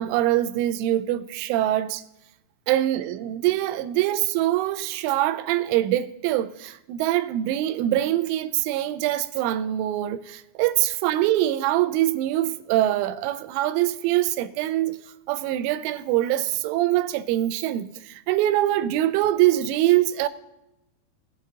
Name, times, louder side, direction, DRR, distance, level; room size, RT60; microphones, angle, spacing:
voice 1, 0.0-2.0 2.7-15.0 15.3-20.3, right 14 dB, 85° right, 3.0 m, -24 dB
18.0 x 6.5 x 3.7 m
omnidirectional pair, 5.7 m